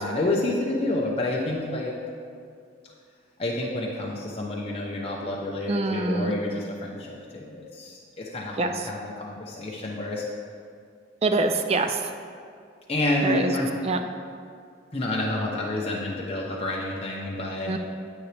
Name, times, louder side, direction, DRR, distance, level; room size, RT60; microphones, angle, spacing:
voice 1, 0.0-1.9 3.4-10.2 12.9-13.7 14.9-17.7, left 1 dB, 30° left, -3 dB, 0.8 m, -29 dB
voice 2, 5.7-6.4 8.6-8.9 11.2-12.1 13.2-13.5 13.8-14.0 17.7-17.8, right 3 dB, 30° right, 7 dB, 0.4 m, -25 dB
9.5 x 9.4 x 3.4 m, 2.3 s
head